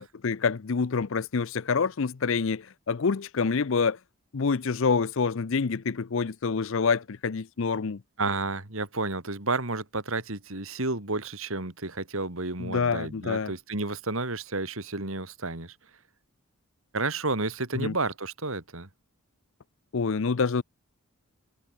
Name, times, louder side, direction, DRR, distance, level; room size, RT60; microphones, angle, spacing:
voice 1, 0.0-4.0 4.3-8.0 12.6-13.5 17.7-17.9 19.9-20.6, left 5 dB, 60° left, 0.5 m, -27 dB
voice 2, 8.2-15.7 16.9-18.9, right 3 dB, 70° right, 3.0 m, -31 dB
head